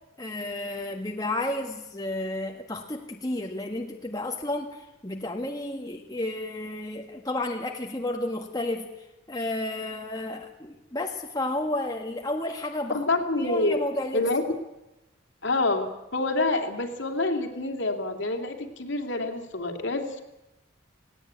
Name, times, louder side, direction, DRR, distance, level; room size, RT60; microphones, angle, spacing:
voice 1, 0.2-13.0 13.4-14.2, left 1 dB, 20° left, 2 dB, 1.6 m, -32 dB
voice 2, 12.9-13.8 14.1-14.6 15.4-20.2, left 2 dB, 60° left, 5 dB, 2.7 m, -27 dB
18.0 x 17.5 x 9.5 m, 0.94 s
head